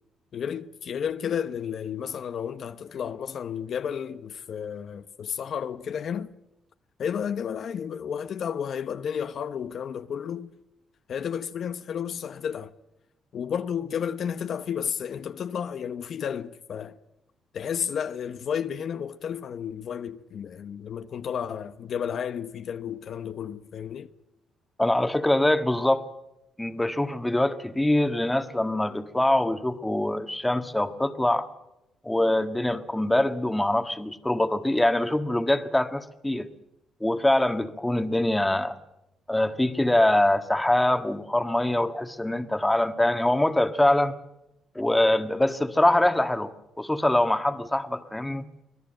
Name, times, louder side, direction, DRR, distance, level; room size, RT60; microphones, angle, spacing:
voice 1, 0.3-6.3 7.0-10.5 11.1-12.7 13.3-17.0 17.5-24.1, left 8 dB, 60° left, 0.9 m, -32 dB
voice 2, 24.8-26.1 26.6-31.5 32.0-36.5 37.0-38.8 39.3-44.1 44.7-48.5, left 1 dB, 10° left, 1.5 m, -24 dB
25.0 x 17.5 x 7.8 m
cardioid pair, 90°, 0 cm